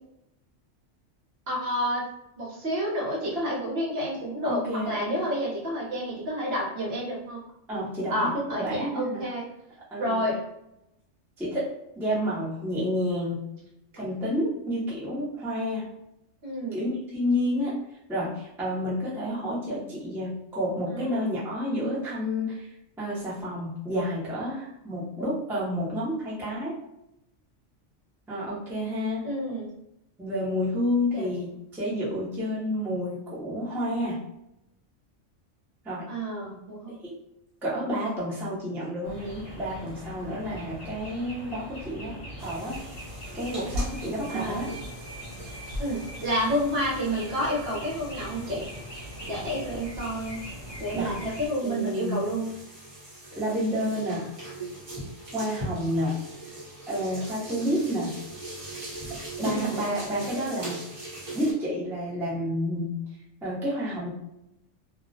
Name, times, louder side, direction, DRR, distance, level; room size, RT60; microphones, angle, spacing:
voice 1, 1.5-2.0 2.4-7.4 8.1-9.5 10.0-10.4 16.4-16.8 20.9-21.2 29.2-29.7 31.1-31.3 36.1-36.9 44.3-44.7 45.8-48.7 49.3-50.4 50.8-52.5 57.8-58.0 59.4-59.8, equal, 60° right, -4 dB, 0.9 m, -29 dB
voice 2, 4.4-5.3 7.7-9.2 9.9-10.3 11.4-11.7 12.0-13.4 13.9-15.9 16.7-17.7 18.1-22.7 23.0-26.8 28.3-29.3 30.2-34.2 35.8-36.1 36.9-37.1 37.6-42.1 42.4-42.8 43.3-44.7 50.9-51.1 51.6-52.3 53.4-54.3 55.3-56.2 56.9-58.2 59.4-60.8 61.3-63.0 63.4-64.1, equal, 5° right, -8 dB, 0.4 m, -30 dB
sound 1, 39.0-51.5, equal, 50° left, 0.8 m, -39 dB
sound 2, 42.4-61.5, right 1 dB, 35° right, 0.7 m, -42 dB
2.3 x 2.1 x 2.6 m, 0.84 s
omnidirectional pair, 1.3 m